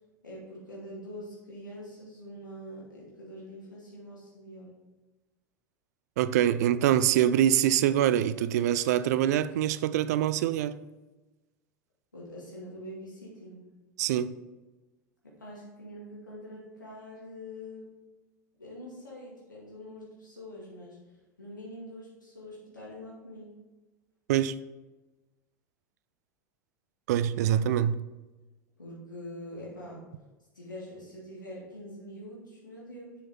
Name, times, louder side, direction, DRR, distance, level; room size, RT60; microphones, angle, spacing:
voice 1, 0.2-4.7 12.1-13.7 15.2-17.9 18.6-23.5 28.8-30.0 30.5-33.2, equal, 85° left, 2.2 m, -44 dB
voice 2, 6.2-10.7 14.0-14.3 24.3-24.5 27.1-28.0, right 11 dB, 60° right, 0.4 m, -24 dB
7.4 x 5.8 x 4.2 m
figure-of-eight pair, 80°, 10 cm